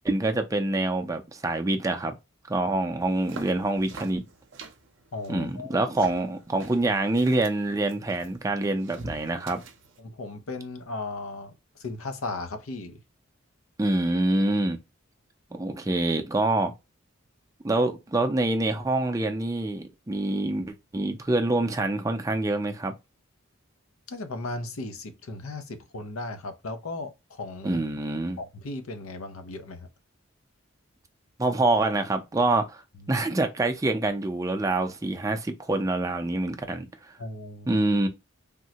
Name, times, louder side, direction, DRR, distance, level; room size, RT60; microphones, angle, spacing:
voice 1, 0.0-2.2 2.5-4.2 5.3-9.6 13.8-14.8 15.5-16.7 17.6-23.0 27.6-28.4 31.4-32.8 33.1-36.9 37.7-38.1, right 2 dB, 15° right, 0.4 m, -26 dB
sound 1, 3.0-10.0, right 3 dB, 60° right, 0.6 m, -46 dB
voice 2, 5.1-5.9 10.0-11.5 11.8-13.0 24.1-27.8 28.4-29.9 37.2-37.8, left 2 dB, 90° left, 0.6 m, -36 dB
3.5 x 2.1 x 2.7 m
head